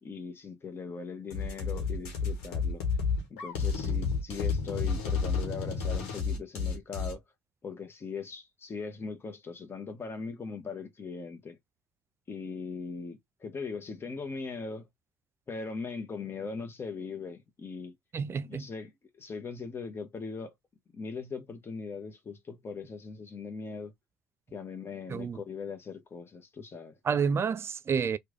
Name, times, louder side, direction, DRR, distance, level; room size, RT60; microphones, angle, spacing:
voice 1, 0.0-2.8 3.3-7.2 7.6-11.6 12.3-14.9 15.5-18.0 18.4-18.9 19.2-20.5 20.9-23.9 24.5-27.0, left 4 dB, 35° left, 0.8 m, -40 dB
sound 1, 1.3-7.1, left 5 dB, 75° left, 1.1 m, -31 dB
voice 2, 18.1-18.7 25.1-25.4 27.0-28.2, right 6 dB, 35° right, 0.4 m, -29 dB
3.1 x 2.3 x 3.6 m
hypercardioid pair, 55°, 7 cm